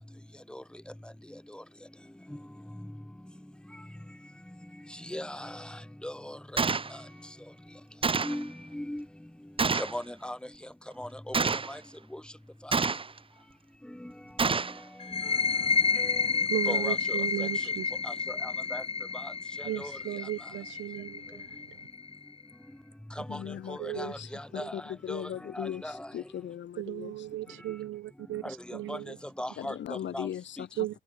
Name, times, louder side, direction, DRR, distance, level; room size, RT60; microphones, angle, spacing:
voice 1, 4.9-7.0 8.2-9.1 9.7-10.4 11.0-11.3 11.7-11.8 12.1-12.2 12.6-12.7 14.0-14.1 15.1-15.3 15.9-16.3 16.7-17.5 18.0-18.8 19.1-19.3 19.6-19.9 23.2-26.1 28.4-29.0 29.4-29.8 30.1-30.3 30.6-30.7, left 1 dB, 5° left, 2.6 m, -39 dB
Gunshot gunfire, 6.6-6.9 8.0-8.4 9.6-10.0 11.3-11.7 12.7-13.2 14.4-14.8, right 4 dB, 25° right, 1.3 m, -27 dB
sound 1, 15.0-22.4, left 5 dB, 30° left, 1.0 m, -30 dB
voice 2, 16.5-17.9 19.6-21.9 23.8-24.1 24.6-24.7 26.8-29.2 30.8-31.0, right 15 dB, 80° right, 0.9 m, -36 dB
voice 3, 23.3-27.1 27.5-27.6 29.6-30.9, left 10 dB, 65° left, 4.1 m, -39 dB
cardioid pair, 90°, 20 cm